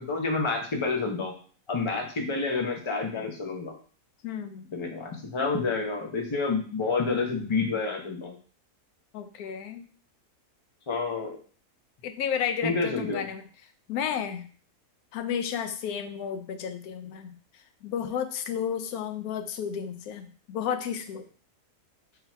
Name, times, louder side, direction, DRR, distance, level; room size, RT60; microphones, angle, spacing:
voice 1, 0.0-1.3 1.7-3.8 4.7-8.3 10.9-11.4 12.6-13.2, left 4 dB, 35° left, 2 dB, 0.5 m, -29 dB
voice 2, 4.2-4.6 9.1-9.8 12.0-13.4 13.9-14.5 15.1-17.3 17.8-21.2, left 8 dB, 75° left, 8 dB, 1.0 m, -32 dB
4.0 x 2.8 x 4.3 m, 0.42 s
omnidirectional pair, 1.7 m